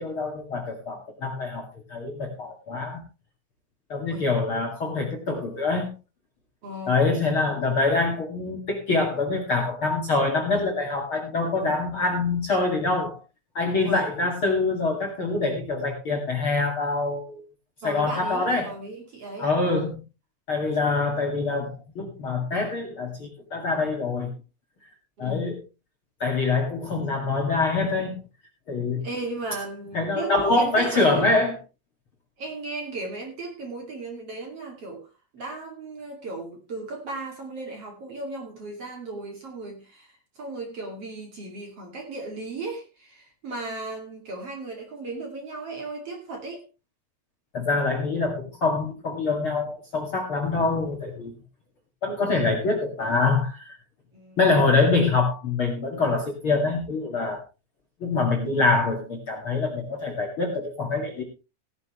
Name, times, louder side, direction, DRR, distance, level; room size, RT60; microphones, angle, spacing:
voice 1, 0.0-3.0 3.9-5.9 6.9-13.2 13.5-17.4 17.8-18.7 19.4-20.0 20.5-24.3 25.2-25.6 26.2-28.2 28.7-29.0 29.9-31.6 47.5-51.3 52.0-53.8 54.4-57.4 58.0-61.2, left 3 dB, 40° left, 1 dB, 2.3 m, -25 dB
voice 2, 6.6-7.0 13.8-14.1 17.8-19.9 25.2-25.4 29.0-31.4 32.4-35.1 35.3-46.6 54.1-54.4, right 2 dB, 40° right, 2 dB, 2.9 m, -36 dB
17.0 x 11.0 x 3.1 m, 0.29 s
omnidirectional pair, 4.7 m